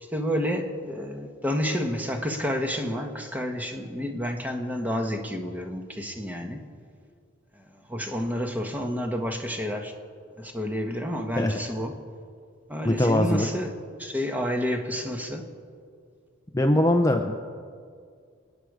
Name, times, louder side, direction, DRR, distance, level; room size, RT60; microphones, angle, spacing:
voice 1, 0.1-6.6 7.5-9.9 10.4-12.0 12.7-15.5, equal, 10° right, 4 dB, 1.3 m, -30 dB
voice 2, 12.8-13.5 16.5-17.3, left 1 dB, 15° left, 4 dB, 0.7 m, -21 dB
28.0 x 9.5 x 4.9 m, 2.2 s
head